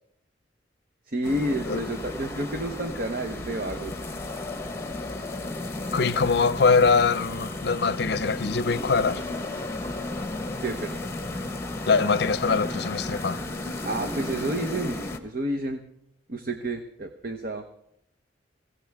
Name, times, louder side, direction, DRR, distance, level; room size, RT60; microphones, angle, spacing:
voice 1, 1.1-3.9 10.6-11.0 13.8-15.8 16.3-17.6, right 1 dB, 50° right, 0.9 m, -30 dB
sound 1, 1.2-15.2, left 2 dB, 15° left, 1.2 m, -34 dB
voice 2, 5.9-9.2 11.9-13.4, left 4 dB, 60° left, 0.6 m, -23 dB
22.5 x 16.5 x 3.5 m
head